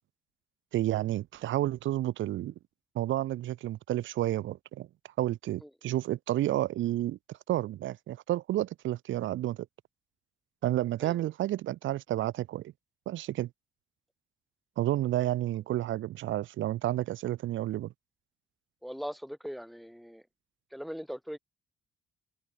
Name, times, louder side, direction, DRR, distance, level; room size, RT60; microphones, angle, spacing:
voice 1, 0.7-2.5 2.9-4.9 5.2-9.7 10.6-12.7 13.1-13.5 14.8-17.9, right 14 dB, 75° right, 0.9 m, -31 dB
voice 2, 18.8-20.2 20.7-21.4, equal, ahead, 2.5 m, -40 dB
cardioid pair, 90°, 20 cm